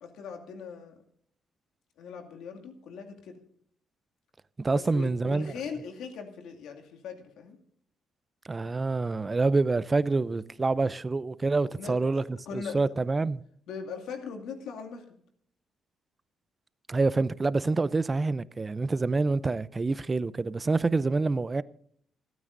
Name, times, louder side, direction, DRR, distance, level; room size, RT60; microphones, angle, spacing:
voice 1, 0.0-1.0 2.0-3.4 4.7-7.6 11.6-12.9 13.7-15.0, left 6 dB, 85° left, 2.4 m, -40 dB
voice 2, 4.6-5.5 8.5-12.2 12.5-13.4 16.9-21.6, right 3 dB, 25° right, 0.6 m, -27 dB
28.0 x 9.4 x 2.6 m
cardioid pair, 90°, 0 cm